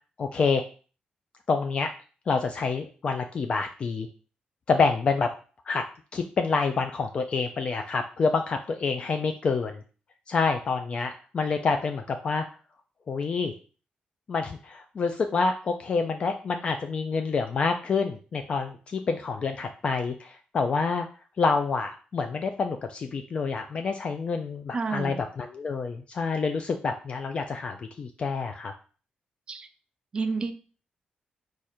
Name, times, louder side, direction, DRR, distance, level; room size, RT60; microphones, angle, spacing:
voice 1, 0.2-0.6 1.5-1.9 2.3-4.1 4.7-5.3 5.7-5.8 6.1-9.8 10.3-12.5 13.1-13.5 14.3-21.1 21.4-28.7, left 4 dB, 40° left, 6 dB, 0.3 m, -27 dB
voice 2, 24.7-25.2 29.5-29.7 30.1-30.5, right 4 dB, 30° right, 8 dB, 0.4 m, -29 dB
4.8 x 2.4 x 4.3 m, 0.38 s
wide cardioid pair, 165°, 3 cm